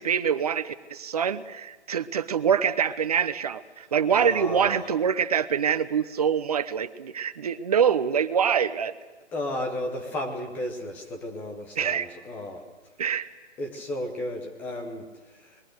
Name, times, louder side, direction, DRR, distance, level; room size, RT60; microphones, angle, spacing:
voice 1, 0.0-8.9 11.8-12.1 13.0-13.3, right 7 dB, 35° right, 13 dB, 0.9 m, -25 dB
voice 2, 4.1-4.9 9.3-12.7 13.6-15.6, left 1 dB, 5° left, 4 dB, 0.8 m, -34 dB
27.0 x 21.5 x 6.5 m, 1.3 s
hypercardioid pair, 165°, 34 cm